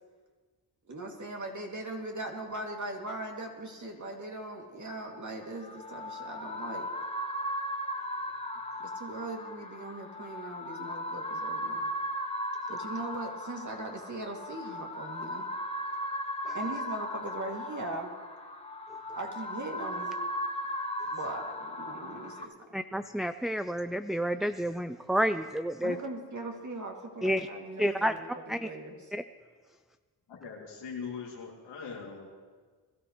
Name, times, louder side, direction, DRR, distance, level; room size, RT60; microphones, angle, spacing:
voice 1, 0.9-6.9 8.9-11.9 12.7-15.5 16.5-18.1 19.1-20.1 21.1-22.5 25.8-29.0, right 2 dB, 45° right, 1 dB, 2.7 m, -39 dB
sound 1, 5.4-22.4, equal, 15° left, 1.2 m, -37 dB
voice 2, 22.7-26.0 27.2-27.5 27.8-28.1 28.5-28.7 29.1-29.2, equal, ahead, 10 dB, 0.4 m, -30 dB
voice 3, 30.3-32.3, left 5 dB, 85° left, -2 dB, 3.0 m, -41 dB
21.0 x 13.0 x 3.3 m, 1.5 s
supercardioid pair, 50°, 42 cm